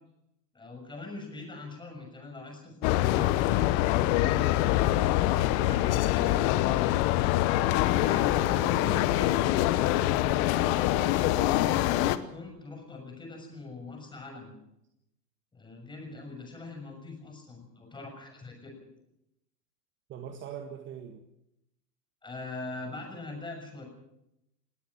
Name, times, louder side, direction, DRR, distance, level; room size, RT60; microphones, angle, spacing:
voice 1, 0.5-4.5 5.0-6.9 7.9-9.4 10.1-14.5 15.5-18.8 22.2-23.8, left 3 dB, 10° left, 3 dB, 6.6 m, -43 dB
sound 1, 2.8-12.2, left 15 dB, 35° left, 1.1 m, -25 dB
voice 2, 8.2-9.4 10.9-11.0 20.1-21.2, right 8 dB, 25° right, 6 dB, 1.7 m, -43 dB
20.0 x 18.0 x 7.2 m, 0.84 s
hypercardioid pair, 120°, 49 cm